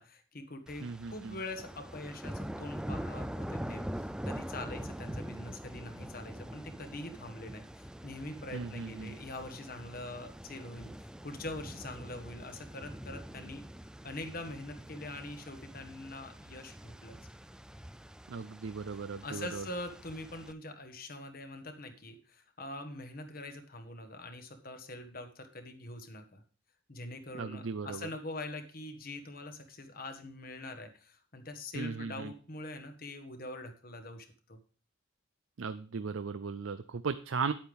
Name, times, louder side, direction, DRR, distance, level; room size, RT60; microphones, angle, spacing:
voice 1, 0.0-13.6 14.0-17.2 19.2-26.4 26.9-34.6, left 2 dB, 45° left, 7 dB, 1.4 m, -44 dB
sound 1, 0.7-20.5, equal, 5° right, 0.3 m, -44 dB
voice 2, 0.8-1.4 8.5-9.1 18.3-19.6 27.3-28.1 31.7-32.3 35.6-37.5, right 5 dB, 70° right, 11 dB, 0.5 m, -37 dB
9.7 x 8.7 x 3.5 m, 0.40 s
head